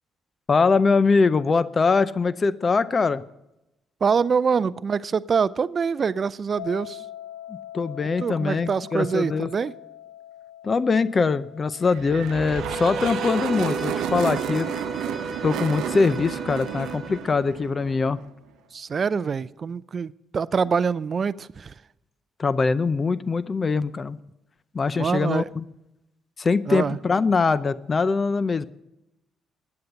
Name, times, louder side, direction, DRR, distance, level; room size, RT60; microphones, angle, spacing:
voice 1, 0.5-3.2 7.7-9.5 10.6-14.7 15.4-18.2 22.4-24.2 24.7-25.6 26.4-28.7, left 4 dB, 35° left, 16 dB, 0.5 m, -22 dB
voice 2, 4.0-7.0 8.2-9.7 18.7-21.7 24.9-25.5 26.7-27.0, right 6 dB, 45° right, 18 dB, 0.4 m, -25 dB
sound 1, 6.6-17.5, left 12 dB, 80° left, 2.9 m, -45 dB
sound 2, 11.9-18.3, right 10 dB, 85° right, 0.7 m, -31 dB
Bowed string instrument, 12.3-17.3, right 1 dB, 5° right, 1.3 m, -35 dB
13.0 x 9.7 x 6.9 m, 0.90 s
cardioid pair, 90°, 0 cm